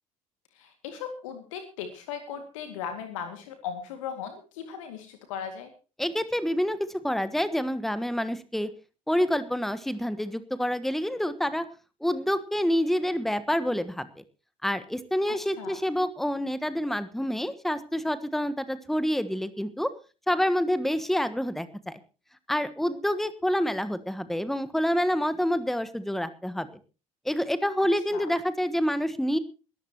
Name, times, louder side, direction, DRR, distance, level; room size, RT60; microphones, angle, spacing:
voice 1, 0.5-5.7 15.5-15.8 28.1-28.3, left 7 dB, 65° left, 7 dB, 2.1 m, -37 dB
voice 2, 6.0-6.8 7.0-8.7 9.1-11.6 12.0-14.2 14.6-19.9 20.3-22.0 22.5-26.7 27.2-29.4, equal, ahead, 14 dB, 1.4 m, -27 dB
21.5 x 14.0 x 2.9 m, 0.33 s
figure-of-eight pair, 60°, 18 cm